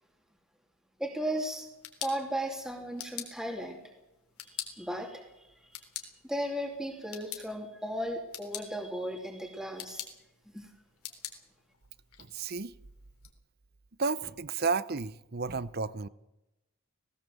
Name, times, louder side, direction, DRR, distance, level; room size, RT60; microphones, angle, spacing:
voice 1, 1.0-1.7 2.0-3.8 4.7-5.2 6.2-10.1 10.5-10.7, equal, 5° right, 2.8 m, -35 dB
sound 1, 1.5-13.3, left 11 dB, 85° left, 3.9 m, -46 dB
voice 2, 12.2-12.7 14.0-16.1, right 4 dB, 45° right, 0.8 m, -32 dB
18.5 x 18.0 x 7.8 m
head